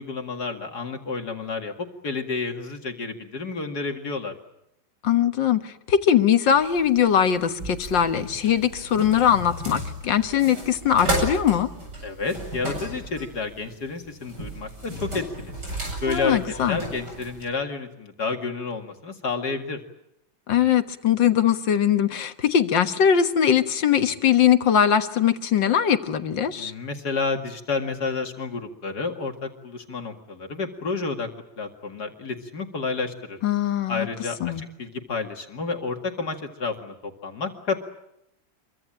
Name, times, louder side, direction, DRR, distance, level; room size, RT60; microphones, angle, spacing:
voice 1, 0.0-4.3 12.0-15.5 16.0-16.4 16.7-19.8 26.6-31.3 31.6-33.4 33.9-37.8, left 4 dB, 55° left, 4 dB, 2.6 m, -30 dB
voice 2, 5.0-11.7 16.1-16.8 20.5-26.7 33.4-34.1 34.4-34.6, left 9 dB, 75° left, 9 dB, 2.0 m, -21 dB
sound 1, 6.5-17.4, right 1 dB, 60° right, 8.9 m, -34 dB
27.0 x 23.5 x 8.9 m, 0.81 s
omnidirectional pair, 2.1 m